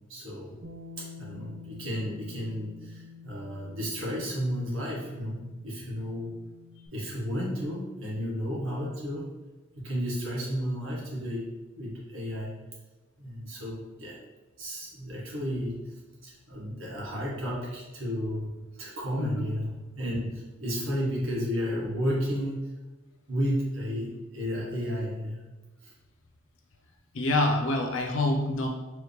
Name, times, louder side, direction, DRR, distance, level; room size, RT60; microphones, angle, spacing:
voice 1, 0.1-0.6 1.0-6.3 6.9-9.3 9.7-11.5 11.7-12.6 13.2-14.2 14.6-15.8 16.2-22.6 23.3-25.4 25.8-25.9, equal, 70° right, -5 dB, 1.4 m, -32 dB
Bass guitar, 0.6-6.9, left 5 dB, 45° right, 0.5 m, -48 dB
voice 2, 19.1-19.5 27.1-28.7, left 2 dB, 65° left, 2 dB, 0.6 m, -26 dB
4.7 x 2.9 x 3.2 m, 1.1 s
head